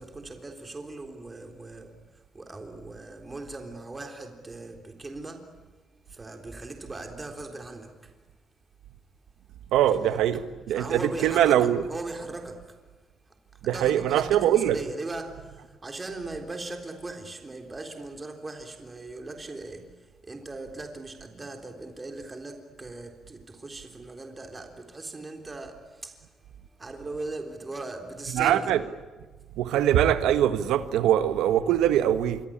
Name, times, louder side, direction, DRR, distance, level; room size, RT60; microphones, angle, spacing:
voice 1, 0.0-5.5 6.1-8.2 10.0-10.2 10.7-12.8 13.3-28.8, right 2 dB, 25° right, 3.7 m, -39 dB
voice 2, 9.7-10.4 10.7-11.8 13.6-14.8 28.3-28.8 29.6-32.4, right 11 dB, 90° right, 1.4 m, -22 dB
27.5 x 24.5 x 8.8 m
cardioid pair, 90°, 0 cm